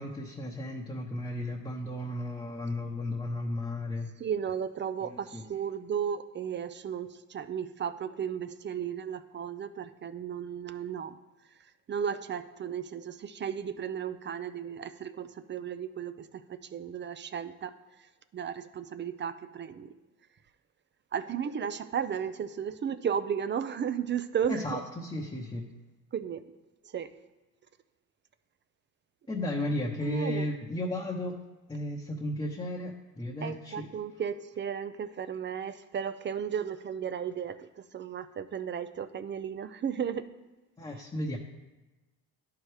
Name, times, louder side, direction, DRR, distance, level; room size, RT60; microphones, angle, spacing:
voice 1, 0.0-4.1 5.0-5.4 24.5-25.7 29.3-31.4 31.7-33.9 40.8-41.4, left 1 dB, 10° left, -2 dB, 0.9 m, -34 dB
voice 2, 4.2-11.2 11.9-17.7 18.3-19.9 21.1-24.8 26.1-26.4 26.9-27.1 30.0-30.5 33.4-40.3, right 8 dB, 30° right, 12 dB, 0.4 m, -34 dB
11.0 x 4.7 x 3.3 m, 1.1 s
supercardioid pair, 70°, 42 cm